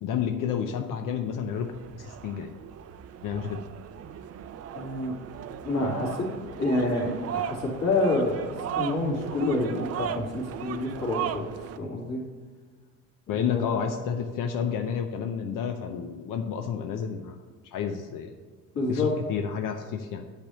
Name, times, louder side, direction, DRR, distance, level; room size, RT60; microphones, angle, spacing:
voice 1, 0.0-1.7 2.0-2.5 3.2-3.6 13.3-17.4 17.7-18.3 18.9-20.2, left 7 dB, 80° left, 5 dB, 0.7 m, -30 dB
sound 1, 1.5-11.8, right 9 dB, 50° right, 0.4 m, -37 dB
voice 2, 4.7-5.1 5.6-6.3 6.6-8.4 8.7-11.5 11.8-12.2 13.3-13.8 18.7-19.2, left 2 dB, 50° left, -3 dB, 2.5 m, -28 dB
9.0 x 3.5 x 6.7 m, 1.5 s
cardioid pair, 145°, 32 cm